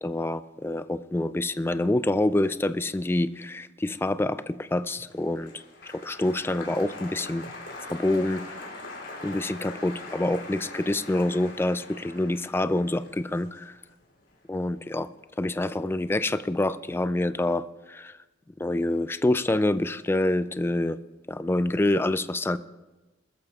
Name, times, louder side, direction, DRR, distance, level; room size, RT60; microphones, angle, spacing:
voice 1, 0.0-7.4 7.9-8.4 9.2-13.7 14.5-15.1 15.4-18.1 18.6-21.0 21.3-22.6, left 1 dB, 15° left, 14 dB, 0.3 m, -26 dB
Applause, 4.8-15.2 15.5-16.1, left 2 dB, 85° left, 3.1 m, -43 dB
21.0 x 13.5 x 2.4 m, 1.1 s
head